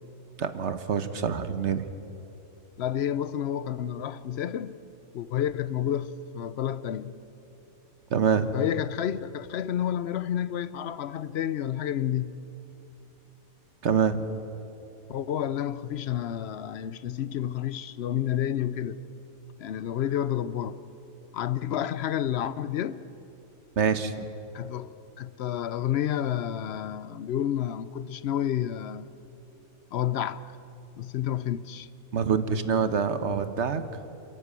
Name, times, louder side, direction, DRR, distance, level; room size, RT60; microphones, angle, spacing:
voice 1, 0.4-1.8 8.1-8.5 13.8-14.2 23.8-24.3 32.1-33.8, right 6 dB, 55° right, 1.1 m, -25 dB
voice 2, 2.8-4.8 5.1-7.1 8.5-12.4 15.1-19.0 19.6-20.8 21.3-23.0 24.5-24.9 25.2-29.1 29.9-30.4 31.0-31.9, left 10 dB, 60° left, 0.7 m, -30 dB
29.0 x 11.0 x 8.3 m
omnidirectional pair, 1.5 m